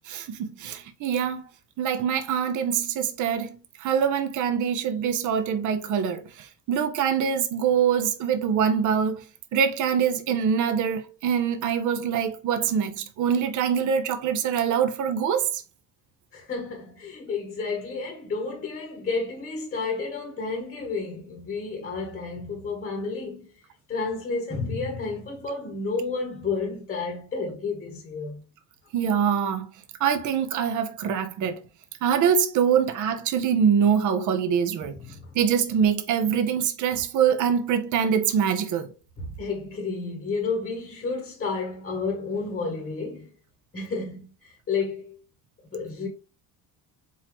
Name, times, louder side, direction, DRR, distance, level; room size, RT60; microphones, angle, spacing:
voice 1, 0.1-1.4 1.8-9.2 9.5-15.6 28.9-29.7 30.0-31.6 32.0-35.0 35.3-38.9, right 7 dB, 45° right, 0.7 m, -24 dB
voice 2, 16.3-23.5 23.9-28.4 34.9-35.3 39.2-43.3 43.7-45.2 45.7-46.1, left 4 dB, 20° left, 1.0 m, -31 dB
4.4 x 3.7 x 3.0 m
cardioid pair, 170°, 41 cm